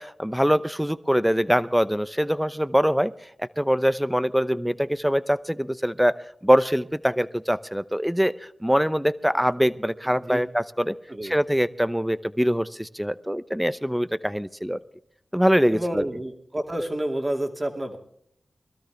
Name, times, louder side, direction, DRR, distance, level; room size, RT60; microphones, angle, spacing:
voice 1, 0.0-3.1 3.4-8.3 8.6-10.9 11.2-14.8 15.3-16.0, equal, 5° right, 16 dB, 0.8 m, -23 dB
voice 2, 15.7-18.0, right 1 dB, 30° right, 4 dB, 2.4 m, -29 dB
21.5 x 13.0 x 3.4 m, 0.70 s
cardioid pair, 40°, 0 cm